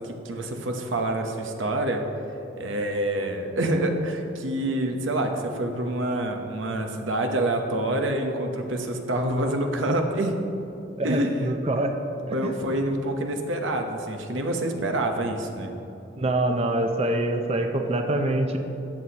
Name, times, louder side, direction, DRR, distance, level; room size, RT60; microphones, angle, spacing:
voice 1, 0.0-2.0 2.6-10.3 11.0-11.3 12.3-15.7, right 1 dB, 90° right, 4 dB, 0.9 m, -27 dB
voice 2, 11.0-11.9 12.2-12.5 16.2-18.6, right 1 dB, 30° right, 4 dB, 0.5 m, -25 dB
13.5 x 7.8 x 2.9 m, 3.0 s
head